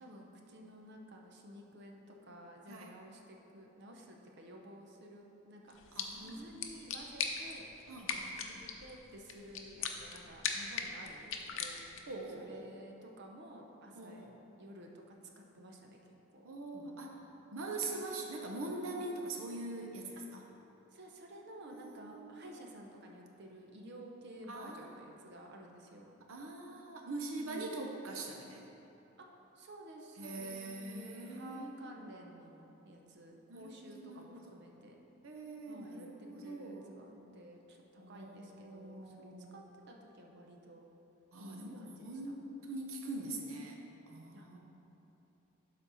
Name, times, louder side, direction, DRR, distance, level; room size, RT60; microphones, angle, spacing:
voice 1, 0.0-7.7 8.1-12.1 12.3-14.3 14.6-17.3 20.2-20.3 20.9-26.1 27.4-28.2 29.2-29.3 29.5-35.0 35.7-40.8 41.4-42.2 44.3-44.5, right 1 dB, 55° right, 1 dB, 0.8 m, -53 dB
sound 1, 5.7-12.2, left 6 dB, 70° left, 0.6 m, -41 dB
voice 2, 5.9-6.4 7.9-8.4 12.1-12.7 14.0-14.3 16.4-17.1 17.5-20.4 21.7-22.4 24.5-24.9 26.3-28.7 30.2-31.9 33.5-34.4 35.2-37.1 38.0-39.6 41.3-43.8 44.1-44.6, right 2 dB, 90° right, 1 dB, 0.8 m, -43 dB
12.0 x 4.2 x 4.1 m, 3.0 s
head